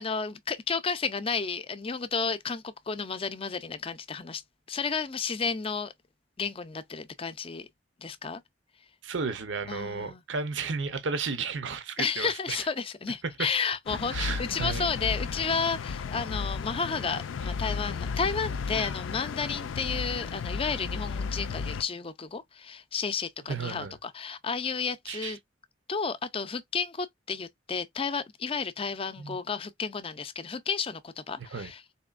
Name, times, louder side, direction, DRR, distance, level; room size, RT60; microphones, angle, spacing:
voice 1, 0.0-4.4 4.7-5.9 6.4-7.7 8.0-8.4 9.7-10.2 12.0-25.4 25.9-32.0, left 5 dB, 30° left, 0.5 m, -32 dB
voice 2, 9.0-12.7 14.1-14.9 18.8-18.9 23.5-23.9 25.1-25.4 29.2-29.4 31.4-31.7, right 5 dB, 70° right, 0.7 m, -33 dB
sound 1, 13.9-21.8, left 5 dB, 80° left, 0.4 m, -34 dB
4.2 x 3.0 x 2.4 m
head